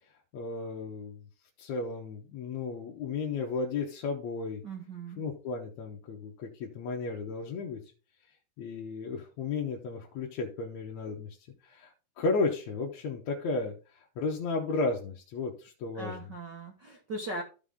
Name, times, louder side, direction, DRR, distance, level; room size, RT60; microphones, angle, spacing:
voice 1, 0.3-1.3 1.6-4.6 5.2-7.8 8.6-11.4 11.6-11.9 12.2-16.3, left 3 dB, 60° left, -2 dB, 2.3 m, -34 dB
voice 2, 4.6-5.2 15.9-17.4, right 2 dB, 55° right, 0 dB, 1.1 m, -39 dB
14.5 x 4.8 x 3.7 m, 0.33 s
omnidirectional pair, 4.0 m